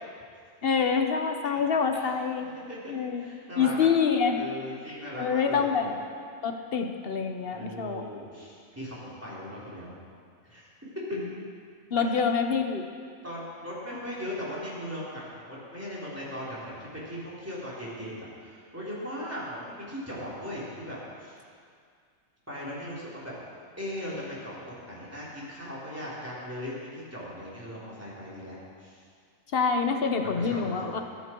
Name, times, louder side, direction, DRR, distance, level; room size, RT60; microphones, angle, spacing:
voice 1, 0.6-2.5 2.9-3.2 3.6-4.4 5.2-5.9 6.4-8.0 11.9-12.8 29.5-31.0, left 6 dB, 45° left, 5 dB, 1.0 m, -26 dB
voice 2, 1.9-3.9 4.4-6.0 7.5-9.9 10.4-10.7 12.0-12.2 13.2-21.4 22.5-23.3 23.8-28.5 28.8-29.0 30.2-30.9, equal, 10° right, -8 dB, 3.7 m, -39 dB
21.5 x 8.3 x 4.6 m, 2.2 s
omnidirectional pair, 1.5 m